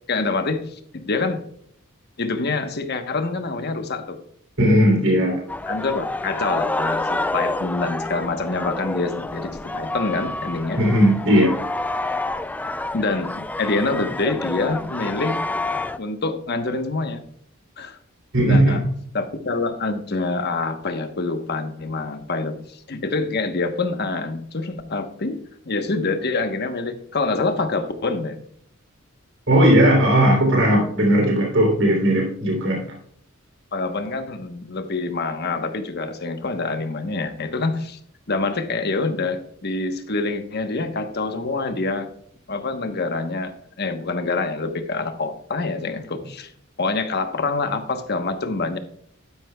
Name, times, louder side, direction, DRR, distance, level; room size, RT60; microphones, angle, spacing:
voice 1, 0.1-1.4 2.2-4.2 5.7-10.8 12.9-15.4 16.0-17.2 17.8-18.0 18.4-18.8 19.1-25.4 25.7-28.4 33.7-38.0 38.3-42.1 42.5-43.5 43.8-46.5 46.8-48.8, left 3 dB, 55° left, 7 dB, 1.1 m, -26 dB
voice 2, 4.6-5.4 10.8-11.6 18.3-18.9 29.5-32.8, equal, 65° right, 0 dB, 3.1 m, -17 dB
sound 1, 5.5-16.0, left 2 dB, 10° left, 0.3 m, -28 dB
11.5 x 10.0 x 2.3 m, 0.64 s
head